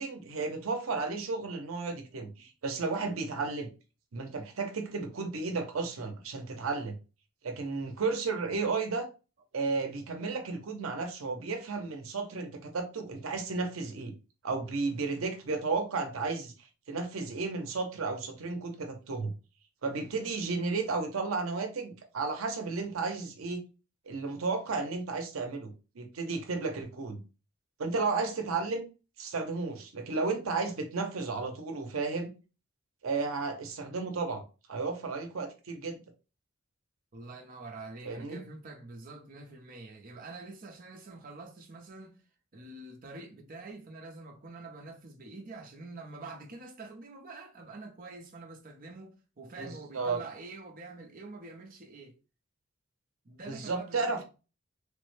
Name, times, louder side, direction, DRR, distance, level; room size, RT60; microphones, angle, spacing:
voice 1, 0.0-3.7 4.1-6.9 7.4-9.1 9.5-14.1 14.4-16.5 16.9-19.3 19.8-23.6 24.1-27.2 27.8-28.9 29.2-32.3 33.0-34.4 34.7-36.0 38.0-38.4 49.6-50.2 53.5-54.2, right 4 dB, 85° right, 0.6 m, -33 dB
voice 2, 37.1-42.2 42.5-52.2 53.2-54.2, right 3 dB, 45° right, 0.6 m, -46 dB
3.3 x 2.1 x 3.1 m
head